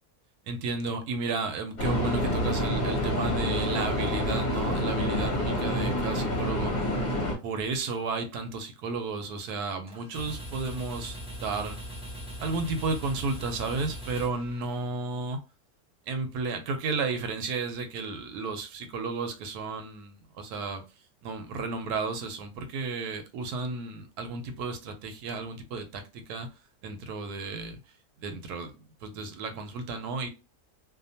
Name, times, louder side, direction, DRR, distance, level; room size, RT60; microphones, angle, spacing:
voice 1, 0.5-6.9 7.4-11.8 12.4-15.4 16.1-20.8 21.2-26.5 26.8-27.8 28.2-28.7 29.0-30.3, right 4 dB, 85° right, 1.1 m, -33 dB
sound 1, 1.8-7.3, left 1 dB, 40° left, 0.7 m, -27 dB
sound 2, 9.9-15.1, equal, 10° right, 0.4 m, -40 dB
2.7 x 2.2 x 2.6 m
omnidirectional pair, 1.6 m